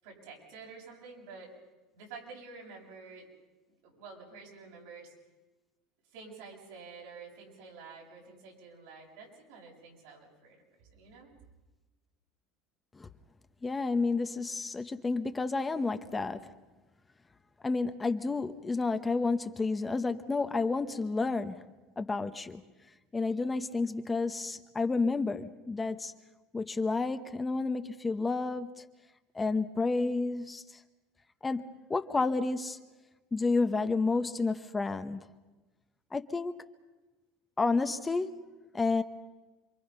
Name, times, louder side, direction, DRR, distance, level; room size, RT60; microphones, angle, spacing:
voice 1, 0.0-1.5 1.9-3.3 3.8-5.1 6.1-11.3, right 4 dB, 80° right, 7.4 m, -49 dB
voice 2, 13.6-16.5 17.6-21.7 22.0-22.6 23.1-26.1 26.5-28.8 29.3-30.8 31.4-32.8 33.3-35.2 36.1-36.6 37.6-38.4 38.7-39.0, left 3 dB, 15° left, 1.0 m, -30 dB
27.5 x 24.0 x 5.6 m
supercardioid pair, 115°, 0 cm